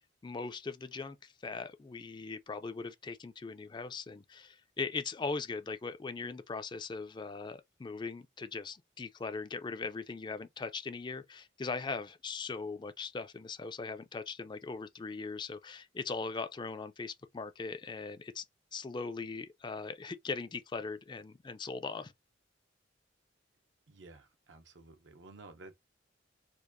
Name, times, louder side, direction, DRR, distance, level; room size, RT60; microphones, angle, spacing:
voice 1, 0.2-18.4 18.7-22.1, left 4 dB, 25° left, 0.4 m, -40 dB
voice 2, 23.9-25.8, right 2 dB, 70° right, 0.7 m, -53 dB
4.5 x 2.4 x 2.5 m
head